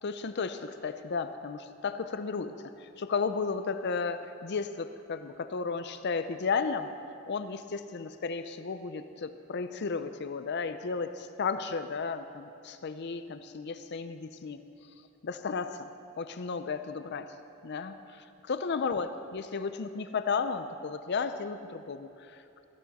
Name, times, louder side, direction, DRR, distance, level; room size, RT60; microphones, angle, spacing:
voice 1, 0.0-2.5 2.8-6.9 7.3-14.6 15.2-15.9 16.2-17.3 17.6-22.6, left 5 dB, 55° left, 10 dB, 0.5 m, -34 dB
17.5 x 14.0 x 4.2 m, 2.7 s
head